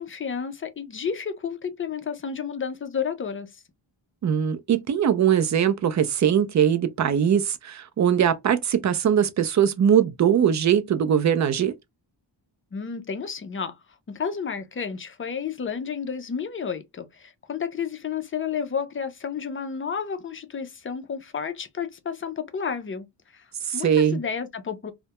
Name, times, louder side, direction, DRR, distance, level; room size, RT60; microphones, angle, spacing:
voice 1, 0.0-3.5 12.7-13.8 14.1-23.1 23.3-23.4 23.7-24.9, left 6 dB, 30° left, 0.4 m, -31 dB
voice 2, 4.2-11.7 23.7-24.2, right 9 dB, 45° right, 0.4 m, -21 dB
2.2 x 2.1 x 2.8 m
wide cardioid pair, 145°, 42 cm